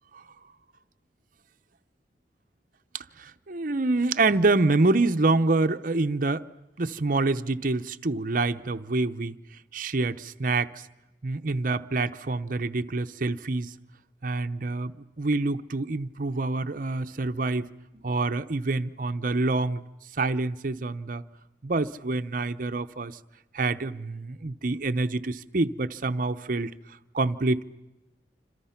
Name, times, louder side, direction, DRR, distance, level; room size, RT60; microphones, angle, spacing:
voice 1, 2.9-6.5 6.8-9.4 9.7-10.9 11.2-13.8 14.2-17.7 17.9-19.8 20.2-21.2 21.6-23.2 23.5-26.7 27.1-27.6, right 3 dB, 50° right, 0.8 m, -26 dB
27.0 x 27.0 x 5.8 m
head